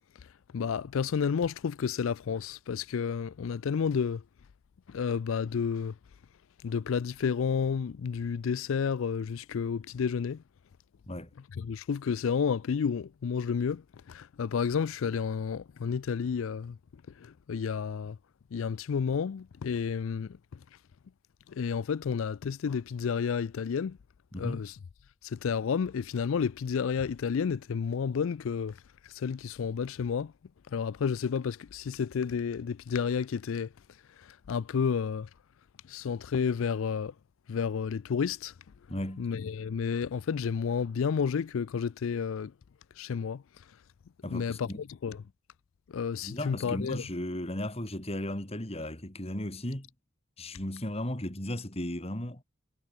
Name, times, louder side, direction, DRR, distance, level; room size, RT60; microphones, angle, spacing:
voice 1, 0.5-4.2 4.9-5.9 6.6-10.4 11.6-13.8 14.1-16.8 17.2-18.2 18.5-20.6 21.5-24.0 24.4-24.7 25.2-28.8 29.1-30.3 30.7-33.7 34.2-35.3 35.9-37.1 37.5-38.5 39.2-42.5 43.0-43.4 44.3-45.2 45.9-47.0, left 6 dB, 65° left, 0.4 m, -31 dB
voice 2, 24.3-24.6 38.9-39.3 44.2-44.8 46.2-49.9 50.4-52.4, left 1 dB, 25° left, 2.6 m, -35 dB
head